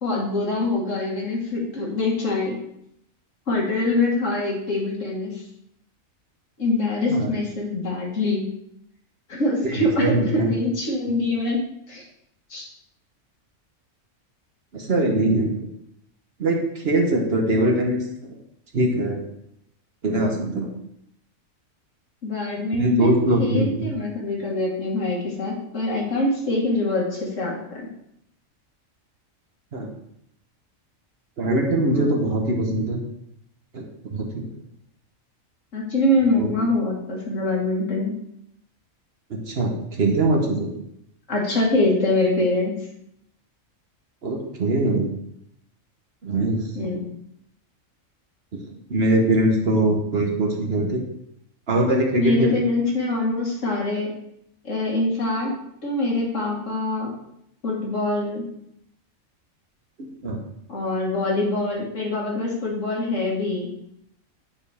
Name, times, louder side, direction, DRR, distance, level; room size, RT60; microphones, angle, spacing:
voice 1, 0.0-2.6 3.5-5.4 6.6-8.4 9.3-11.6 11.9-12.0 12.5-12.7 22.2-27.8 31.9-32.3 35.7-38.1 41.3-42.7 46.8-47.0 52.2-54.1 54.6-55.5 55.8-57.1 57.6-58.4 60.7-63.7, left 2 dB, 65° left, -2 dB, 2.1 m, -24 dB
voice 2, 9.6-10.5 14.7-15.7 16.4-18.3 18.7-19.2 20.0-20.7 22.7-23.9 29.7-29.9 31.4-33.0 33.7-33.8 34.1-34.5 36.3-36.5 39.3-40.7 44.2-45.1 46.2-46.6 48.5-48.6 48.9-51.0 51.7-52.5 60.0-60.4, right 1 dB, 50° right, 1 dB, 1.2 m, -22 dB
9.5 x 4.6 x 3.4 m, 0.75 s
omnidirectional pair, 1.4 m